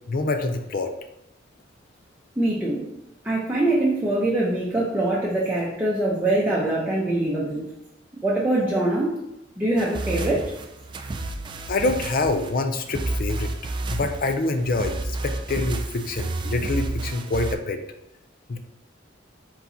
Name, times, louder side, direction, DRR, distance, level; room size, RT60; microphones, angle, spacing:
voice 1, 0.1-0.9 11.7-13.5 13.9-17.8 18.5-18.6, left 2 dB, 45° left, 7 dB, 0.5 m, -26 dB
voice 2, 2.4-2.8 3.2-7.7 8.2-9.2 9.6-10.5, right 1 dB, 10° right, -6 dB, 0.7 m, -23 dB
sound 1, 9.8-17.5, right 2 dB, 25° right, 0.3 m, -30 dB
4.5 x 3.9 x 2.8 m, 0.89 s
head